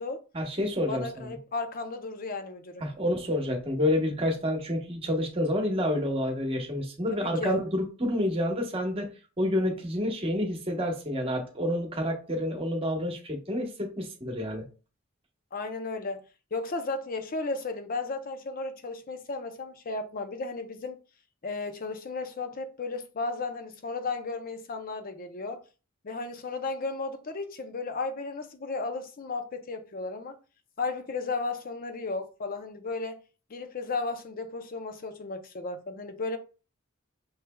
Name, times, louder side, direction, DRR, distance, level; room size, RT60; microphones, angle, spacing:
voice 1, 0.3-1.4 2.8-9.1 9.4-14.6, left 1 dB, 30° right, 1.0 m, -29 dB
voice 2, 0.9-2.8 7.1-7.6 15.5-16.2 16.5-21.0 21.4-25.6 26.0-30.3 30.8-33.2 33.5-36.4, left 3 dB, 45° left, 0.6 m, -34 dB
5.8 x 3.2 x 2.2 m
head